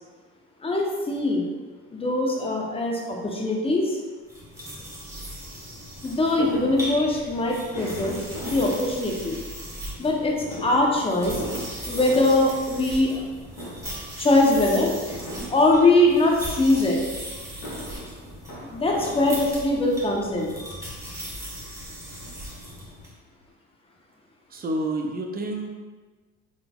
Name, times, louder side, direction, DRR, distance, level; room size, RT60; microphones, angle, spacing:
voice 1, 0.6-1.4 1.9-4.0 4.6-4.7 6.0-9.4 10.0-10.3 10.6-11.4 11.8-13.2 13.6-13.7 14.2-15.2 15.5-17.0 18.7-20.6, left 2 dB, 15° left, -1 dB, 0.7 m, -22 dB
sound 1, 4.3-23.1, equal, 10° right, 1.1 m, -38 dB
Fireworks, 6.4-9.6 10.4-13.3 13.5-14.2 15.1-16.2 17.3-20.0 20.8-20.9 21.2-21.3 21.6-22.8 23.1-23.2 23.4-23.5, equal, 60° left, 1.4 m, -38 dB
voice 2, 24.5-25.7, right 1 dB, 25° right, 2 dB, 0.5 m, -29 dB
3.9 x 3.3 x 2.3 m, 1.4 s
supercardioid pair, 90°, 34 cm